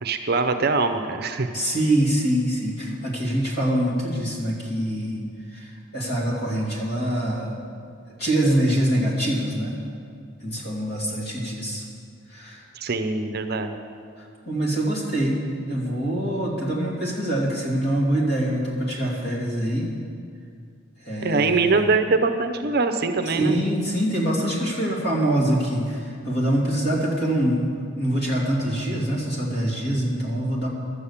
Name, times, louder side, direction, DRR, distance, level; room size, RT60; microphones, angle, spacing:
voice 1, 0.0-1.5 12.7-13.8 21.2-23.6, right 3 dB, 50° right, 7 dB, 0.6 m, -23 dB
voice 2, 1.5-5.2 5.5-7.6 8.2-9.8 10.4-11.8 12.3-12.6 14.2-19.9 21.0-21.8 23.3-30.7, right 1 dB, 50° left, -3 dB, 2.7 m, -24 dB
12.0 x 8.3 x 7.1 m, 2.3 s
head